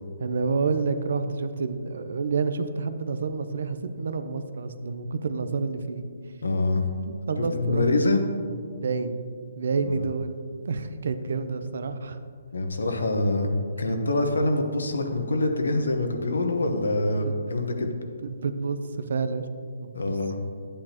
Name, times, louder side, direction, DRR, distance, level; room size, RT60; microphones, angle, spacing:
voice 1, 0.2-6.1 7.3-7.9 8.8-9.2 9.5-12.2 17.2-17.4 17.8-19.5 19.8-20.2, right 4 dB, 65° right, 10 dB, 0.6 m, -29 dB
voice 2, 6.4-6.8 7.5-8.2 9.9-10.0 12.5-13.5 13.8-17.9 19.9-20.4, left 2 dB, 85° left, 5 dB, 1.1 m, -25 dB
9.8 x 8.7 x 3.0 m, 2.2 s
hypercardioid pair, 150°, 0 cm